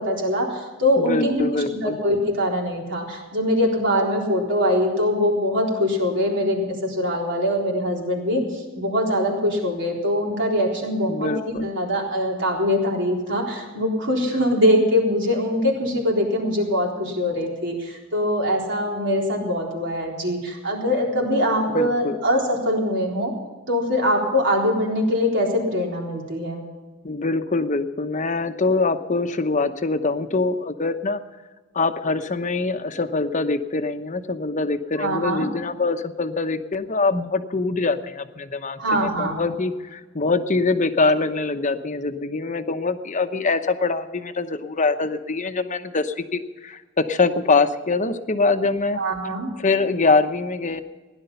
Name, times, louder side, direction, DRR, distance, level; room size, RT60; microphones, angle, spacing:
voice 1, 0.0-23.3 23.7-26.6 35.0-35.5 38.8-39.5 48.9-49.5, equal, 65° right, -1 dB, 4.0 m, -23 dB
voice 2, 1.0-2.0 11.1-11.7 21.7-22.2 27.0-31.2 31.7-49.0 49.6-50.8, left 3 dB, 40° left, 8 dB, 0.9 m, -24 dB
17.0 x 11.0 x 5.7 m, 1.3 s
head